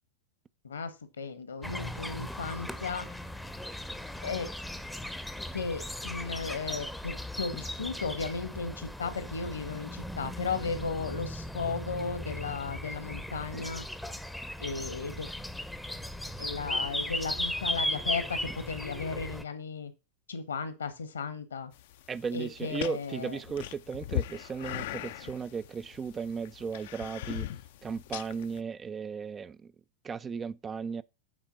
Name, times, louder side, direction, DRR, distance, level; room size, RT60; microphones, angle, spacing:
voice 1, 0.6-3.0 4.2-4.5 5.5-13.8 14.6-15.3 16.4-19.9 20.3-21.7 22.3-23.4, left 5 dB, 70° left, 1.3 m, -35 dB
sound 1, 1.6-19.4, left 1 dB, ahead, 0.7 m, -37 dB
sound 2, 21.7-28.6, left 13 dB, 55° left, 0.5 m, -39 dB
voice 2, 22.1-27.5 27.8-29.7 30.0-31.0, right 6 dB, 20° right, 0.4 m, -36 dB
8.9 x 4.2 x 5.5 m
figure-of-eight pair, 90°, 0 cm